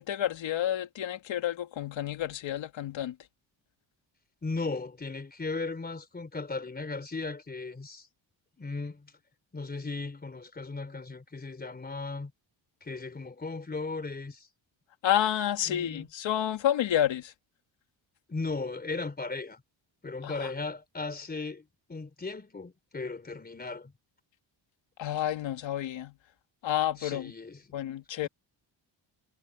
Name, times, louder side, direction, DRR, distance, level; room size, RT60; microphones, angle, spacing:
voice 1, 0.0-3.2 15.0-17.3 20.2-20.5 25.0-26.2 26.6-27.3 27.7-28.3, left 11 dB, 75° left, 2.5 m, -30 dB
voice 2, 4.4-8.1 8.6-9.1 9.5-12.3 12.8-14.5 15.7-16.1 18.3-19.6 20.0-23.9 27.0-27.6, left 3 dB, 20° left, 3.6 m, -36 dB
cardioid pair, 130°, 46 cm